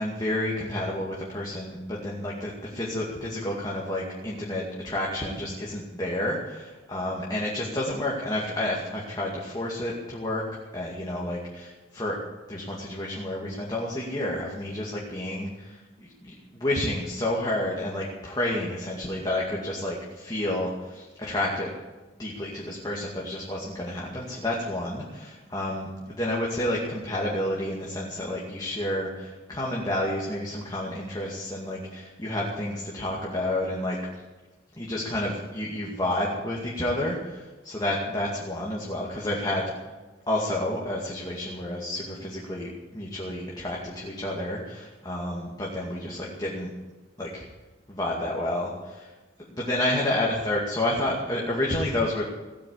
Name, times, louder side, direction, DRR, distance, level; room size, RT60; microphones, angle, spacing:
voice 1, 0.0-10.4 10.7-12.2 12.5-15.8 16.2-21.7 22.2-25.9 26.2-34.0 34.8-39.6 40.3-46.7 47.2-47.4 47.9-49.1 49.5-52.3, left 1 dB, 20° left, -4 dB, 2.3 m, -30 dB
17.0 x 8.8 x 8.5 m, 1.2 s
head